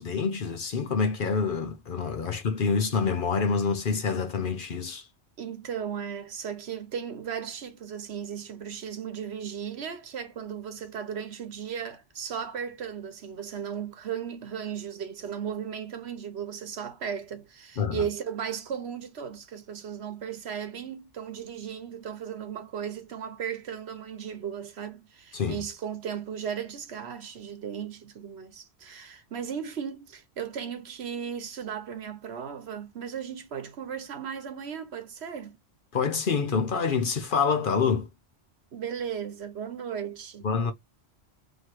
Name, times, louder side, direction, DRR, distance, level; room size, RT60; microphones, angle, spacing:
voice 1, 0.0-5.1 17.8-18.0 25.3-25.6 35.9-38.1 40.4-40.7, left 5 dB, 55° left, 0.8 m, -27 dB
voice 2, 5.4-35.6 38.7-40.5, right 8 dB, 65° right, 1.1 m, -36 dB
3.1 x 2.9 x 4.4 m
omnidirectional pair, 1.2 m